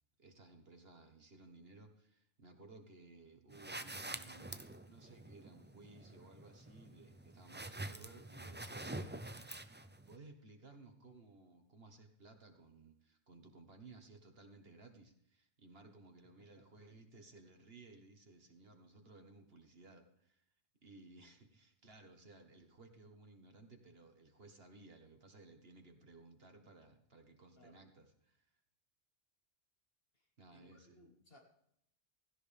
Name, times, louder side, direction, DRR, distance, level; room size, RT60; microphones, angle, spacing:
voice 1, 0.2-20.4 20.8-28.5 30.4-31.0, right 3 dB, 60° right, 5 dB, 2.0 m, -59 dB
sound 1, 3.5-10.1, right 2 dB, 15° right, 0.5 m, -47 dB
voice 2, 30.1-31.4, left 1 dB, 60° left, 1 dB, 2.2 m, -65 dB
16.0 x 16.0 x 3.5 m, 0.72 s
omnidirectional pair, 1.1 m